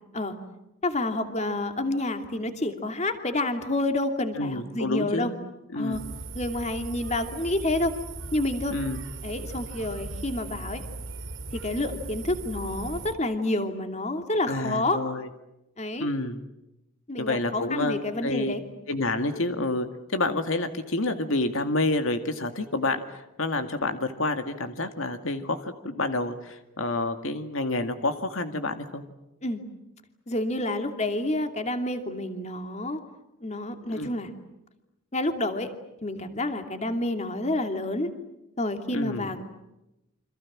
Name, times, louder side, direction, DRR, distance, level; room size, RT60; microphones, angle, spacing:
voice 1, 0.8-5.3 5.7-6.0 6.3-8.0 8.3-8.7 9.2-10.8 11.5-15.0 15.8-16.1 17.1-18.6 29.4-29.6 30.3-33.0 33.4-34.3 35.1-35.7 36.0-38.1 38.6-39.4, left 2 dB, 30° left, 7 dB, 2.6 m, -29 dB
voice 2, 4.4-5.4 5.7-6.0 8.7-9.0 14.5-15.3 16.0-16.4 17.2-18.5 18.9-29.0 33.9-34.1 38.9-39.4, left 2 dB, 70° left, 8 dB, 2.1 m, -29 dB
sound 1, 5.9-13.1, right 3 dB, 60° right, 3.0 m, -38 dB
29.0 x 26.0 x 7.4 m, 0.92 s
head